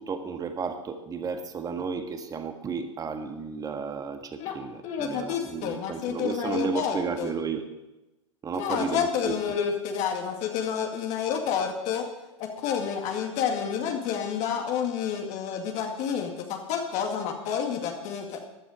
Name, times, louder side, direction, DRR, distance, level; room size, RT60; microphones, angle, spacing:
voice 1, 0.0-7.7 8.4-9.6, right 5 dB, 20° right, 7 dB, 1.7 m, -33 dB
voice 2, 4.8-7.3 8.5-12.1 12.4-18.4, left 7 dB, 45° left, 2 dB, 2.2 m, -29 dB
15.0 x 11.5 x 5.0 m, 1.0 s
hypercardioid pair, 100°, 16 cm